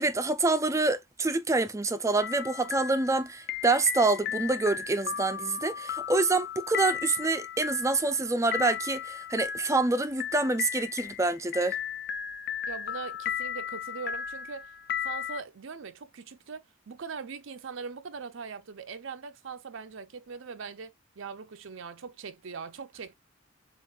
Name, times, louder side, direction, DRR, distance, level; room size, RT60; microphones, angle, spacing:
voice 1, 0.0-11.8, right 3 dB, 15° right, 0.5 m, -26 dB
sound 1, 2.2-15.4, left 9 dB, 50° left, 0.4 m, -36 dB
voice 2, 12.7-14.7 15.0-23.1, right 5 dB, 65° right, 0.5 m, -41 dB
7.3 x 2.5 x 2.4 m
head